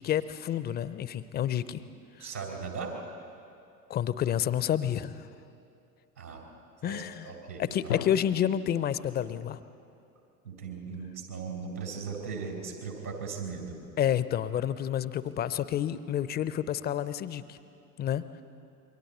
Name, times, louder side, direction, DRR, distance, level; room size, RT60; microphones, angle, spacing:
voice 1, 0.0-1.8 3.9-5.1 6.8-7.3 7.6-9.6 14.0-17.6 18.0-18.2, left 10 dB, 20° left, 15 dB, 0.6 m, -29 dB
voice 2, 2.2-2.9 6.2-6.4 6.8-8.0 10.4-13.8, right 5 dB, 80° right, 1 dB, 4.3 m, -38 dB
Drum, 7.9-9.8, left 11 dB, 70° left, 0.6 m, -39 dB
28.0 x 23.0 x 4.3 m, 2.6 s
figure-of-eight pair, 80°, 46 cm